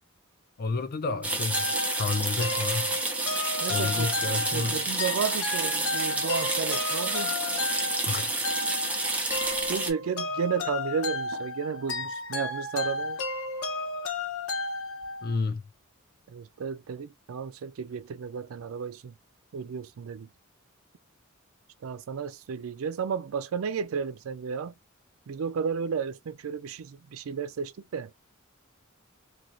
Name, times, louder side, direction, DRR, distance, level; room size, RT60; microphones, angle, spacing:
voice 1, 0.6-1.7 2.0-2.9 3.7-4.8 8.1-8.4 15.2-15.6, left 4 dB, 50° left, 0.6 m, -30 dB
sound 1, 1.2-9.9, right 2 dB, 5° right, 0.6 m, -29 dB
sound 2, 1.5-15.4, left 3 dB, 85° left, 1.0 m, -33 dB
voice 2, 3.6-7.4 9.7-13.2 16.3-19.1 19.5-20.3 21.8-24.7 25.3-28.1, right 6 dB, 75° right, 0.4 m, -33 dB
3.0 x 2.3 x 2.5 m
head